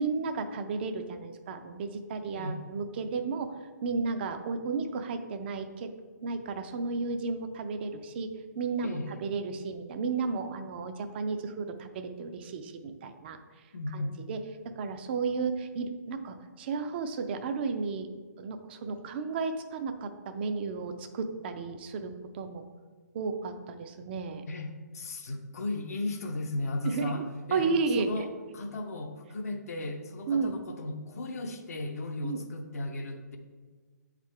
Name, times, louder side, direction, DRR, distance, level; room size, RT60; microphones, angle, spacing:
voice 1, 0.0-3.5 3.8-5.9 6.2-13.4 13.9-14.4 14.8-18.1 18.4-22.7 23.1-24.4 26.8-27.2 27.5-28.2 30.3-30.5 32.2-32.4, right 4 dB, 35° right, 8 dB, 0.5 m, -33 dB
voice 2, 8.8-9.2 13.7-14.2 24.5-33.4, left 2 dB, 55° left, 4 dB, 0.7 m, -36 dB
8.6 x 3.7 x 3.2 m, 1.4 s
figure-of-eight pair, 135°, 10 cm